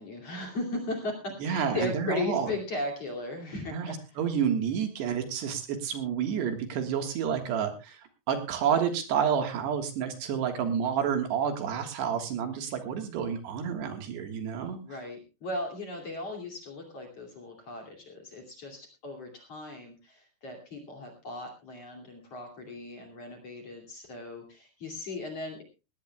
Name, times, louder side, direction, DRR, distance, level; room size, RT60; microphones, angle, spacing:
voice 1, 0.0-4.2 14.8-25.6, left 2 dB, 40° left, 1 dB, 3.1 m, -37 dB
voice 2, 1.4-2.5 3.7-14.8, right 8 dB, 70° right, 6 dB, 3.5 m, -29 dB
19.5 x 17.5 x 2.3 m, 0.30 s
omnidirectional pair, 5.3 m